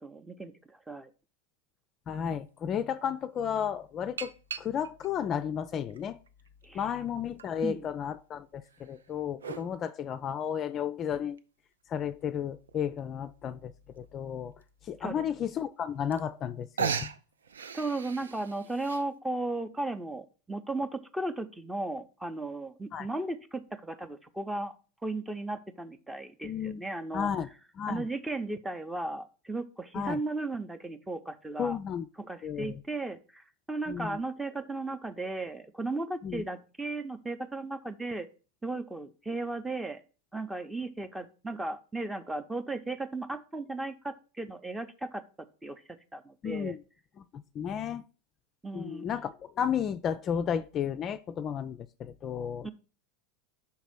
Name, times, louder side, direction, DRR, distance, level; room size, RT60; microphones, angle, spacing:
voice 1, 0.0-1.1 6.6-6.9 7.6-7.9 15.0-15.3 17.7-24.7 25.0-27.3 27.9-31.8 32.2-38.3 38.6-40.0 40.3-45.2 45.6-45.8 46.1-46.7 48.6-49.1 52.6-52.7, right 2 dB, 10° right, 0.7 m, -36 dB
voice 2, 2.1-6.2 6.7-11.4 11.9-14.5 14.8-17.1 22.9-23.1 26.4-26.8 27.1-27.5 27.8-28.1 29.9-30.2 31.6-32.1 32.4-32.8 33.9-34.2 36.2-36.4 46.4-46.8 47.2-48.0 48.7-52.7, left 8 dB, 35° left, 0.4 m, -33 dB
sound 1, 2.4-2.5 4.2-5.1 5.8-6.8 7.4-7.5 8.7-9.7 11.4-11.5 12.0-12.1 12.2-12.3 12.7-13.0 14.0-14.1 14.6-14.7 15.8-15.9 16.1-16.5 16.8-19.0, right 6 dB, 75° right, 0.4 m, -37 dB
5.7 x 4.0 x 6.0 m
figure-of-eight pair, 85°, 0 cm